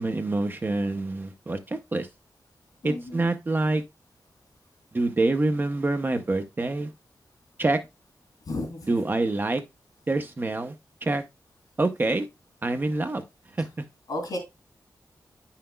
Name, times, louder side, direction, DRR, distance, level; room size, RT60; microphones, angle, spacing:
voice 1, 0.0-2.1 2.8-3.8 4.9-6.9 7.6-7.8 8.8-9.6 10.1-10.8 11.0-11.2 11.8-12.3 12.6-13.2 13.6-13.7, right 2 dB, 30° right, 0.7 m, -26 dB
voice 2, 2.8-3.2 8.5-8.8 14.1-14.4, left 1 dB, 80° left, 3.0 m, -32 dB
9.7 x 5.8 x 2.2 m
wide cardioid pair, 125°, 7 cm